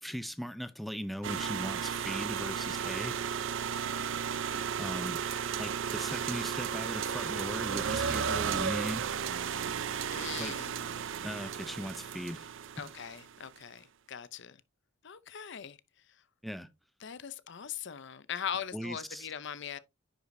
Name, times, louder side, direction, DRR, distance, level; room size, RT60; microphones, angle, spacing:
voice 1, 0.0-3.2 4.8-5.2 5.6-9.1 10.4-10.6 11.2-12.5 16.4-16.7 18.7-19.3, equal, ahead, 0.5 m, -38 dB
sound 1, 1.2-13.3, right 7 dB, 70° right, 0.5 m, -34 dB
voice 2, 3.6-4.9 10.1-10.8 12.8-14.6 15.0-15.8 17.0-19.8, left 8 dB, 60° left, 0.6 m, -41 dB
10.0 x 4.9 x 2.6 m
head